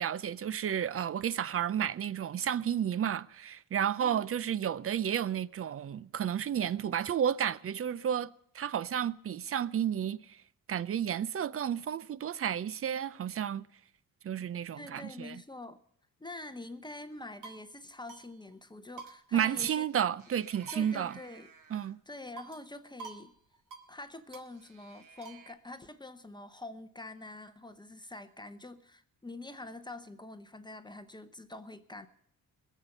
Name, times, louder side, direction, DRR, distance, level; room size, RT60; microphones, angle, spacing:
voice 1, 0.0-10.4 10.7-13.7 14.2-15.4 19.3-21.2 21.7-22.0, right 9 dB, 40° right, 0.5 m, -32 dB
voice 2, 14.7-15.8 16.2-19.8 20.7-21.5 22.1-23.4 23.9-32.1, left 2 dB, 15° left, 0.8 m, -46 dB
sound 1, 17.1-17.7 18.1-18.3 18.5-18.6 19.0-19.9 20.2-21.9 22.4-22.7 23.0-23.3 23.5-23.9 24.3-25.5, right 5 dB, 65° right, 2.1 m, -50 dB
21.0 x 7.4 x 6.6 m
cardioid pair, 115°, 34 cm